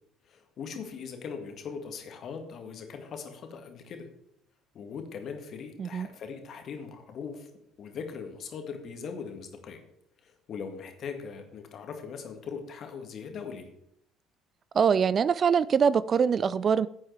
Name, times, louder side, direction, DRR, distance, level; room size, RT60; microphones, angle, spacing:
voice 1, 0.3-4.1 4.7-7.5 7.8-9.8 10.2-13.7, left 6 dB, 50° left, 5 dB, 1.9 m, -40 dB
voice 2, 14.7-16.9, right 6 dB, 40° right, 18 dB, 0.4 m, -23 dB
14.5 x 8.5 x 3.4 m, 0.75 s
figure-of-eight pair, 55°, 0 cm